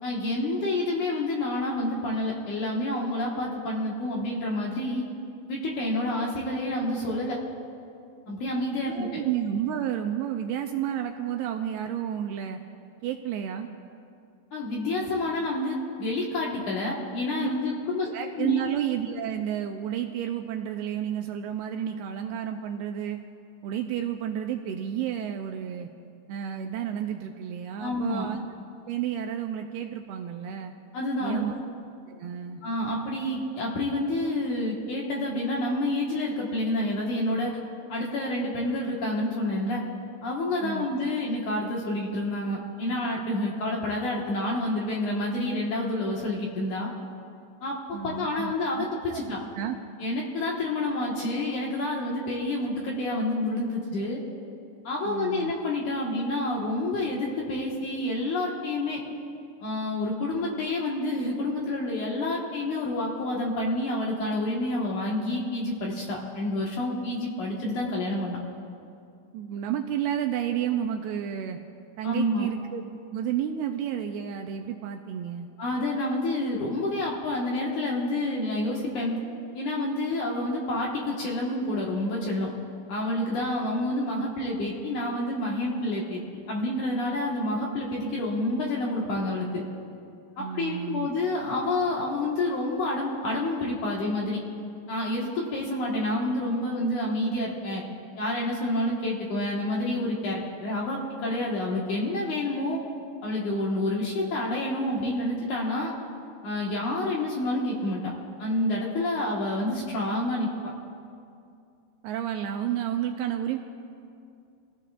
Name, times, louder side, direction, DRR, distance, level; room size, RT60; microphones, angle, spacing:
voice 1, 0.0-5.0 5.5-7.4 8.3-9.1 14.5-18.1 18.4-18.7 27.8-28.3 30.9-31.4 32.6-37.5 37.9-39.8 40.2-46.9 47.6-49.4 50.0-54.2 54.8-59.0 59.6-68.4 72.0-72.5 75.6-79.1 79.5-82.5 82.9-86.2 86.5-89.6 90.4-94.4 94.9-97.8 98.2-102.8 103.2-105.9 106.4-108.0 108.4-110.7, left 1 dB, 60° left, -3 dB, 2.4 m, -28 dB
voice 2, 8.9-12.6 13.0-13.7 17.4-17.5 18.0-23.2 23.6-25.9 26.3-28.4 28.9-30.7 31.2-31.6 32.1-32.6 40.6-40.9 47.9-48.9 49.1-49.2 49.6-49.8 55.0-55.5 69.3-71.6 72.0-72.8 73.1-75.5 90.4-91.1 112.0-113.6, right 10 dB, 80° right, 4 dB, 2.4 m, -31 dB
28.0 x 16.0 x 2.5 m, 2.4 s
omnidirectional pair, 5.0 m